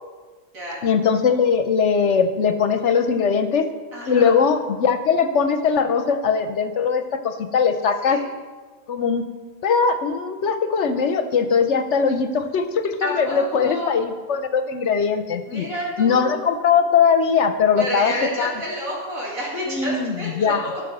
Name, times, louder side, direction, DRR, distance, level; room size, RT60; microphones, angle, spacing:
voice 1, 0.8-3.6 4.1-8.2 8.9-9.2 9.6-15.7 16.0-18.1 18.4-18.5 19.7-20.7, left 6 dB, 60° left, 9 dB, 1.0 m, -20 dB
voice 2, 3.9-4.3 8.0-8.2 13.0-14.0 15.5-16.3 17.8-20.8, equal, 90° right, -5 dB, 2.9 m, -29 dB
12.0 x 5.9 x 6.6 m, 1.4 s
omnidirectional pair, 1.4 m